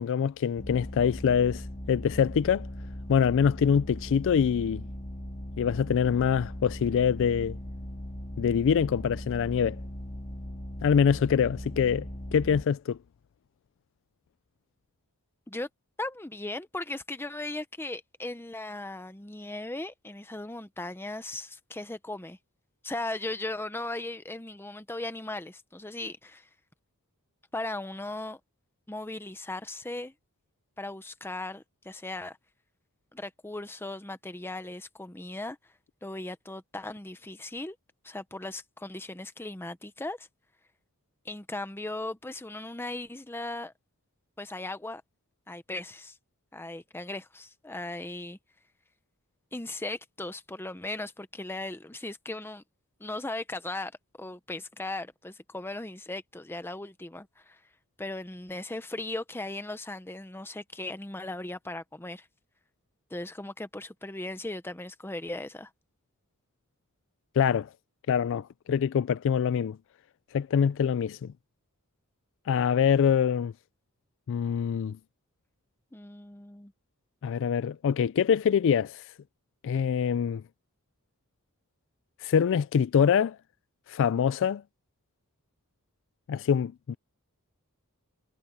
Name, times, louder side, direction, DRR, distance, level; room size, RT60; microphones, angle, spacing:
voice 1, 0.0-2.7 3.1-4.9 5.6-7.6 8.4-9.8 10.8-12.1 12.3-13.0 67.4-67.7 68.1-69.8 70.3-71.3 72.5-73.5 74.3-75.0 77.2-79.0 79.6-80.4 82.2-83.4 83.9-84.6 86.3-87.0, left 7 dB, 60° left, 0.3 m, -24 dB
sound 1, 0.6-12.6, left 1 dB, 30° left, 2.2 m, -39 dB
voice 2, 16.0-22.4 22.8-26.5 27.5-28.4 28.9-30.1 30.8-32.4 33.1-35.6 36.0-37.8 38.0-40.3 41.2-43.7 44.4-45.0 45.5-46.2 46.5-48.4 49.5-52.6 53.0-53.9 54.2-57.6 58.0-62.3 63.1-65.7 75.9-76.7, left 2 dB, 10° left, 0.8 m, -37 dB
head